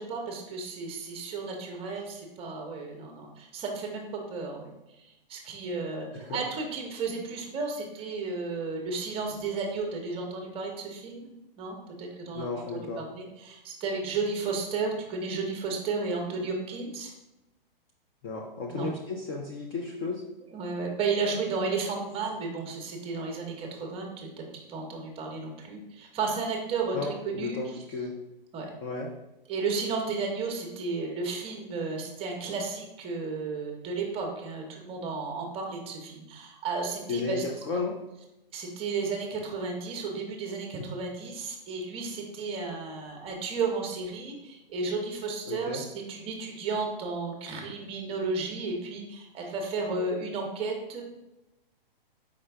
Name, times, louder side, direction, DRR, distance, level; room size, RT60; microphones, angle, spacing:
voice 1, 0.0-4.0 4.3-4.7 5.0-11.3 11.6-17.1 18.7-18.9 20.5-24.4 24.7-27.6 28.5-28.7 29.5-37.4 38.5-51.0, right 4 dB, 20° right, 1 dB, 0.8 m, -33 dB
voice 2, 12.3-13.0 18.2-20.2 26.9-28.1 28.8-29.1 37.1-37.9 45.5-45.8, left 3 dB, 25° left, -1 dB, 0.4 m, -33 dB
4.8 x 3.2 x 3.4 m, 0.94 s
hypercardioid pair, 135°, 29 cm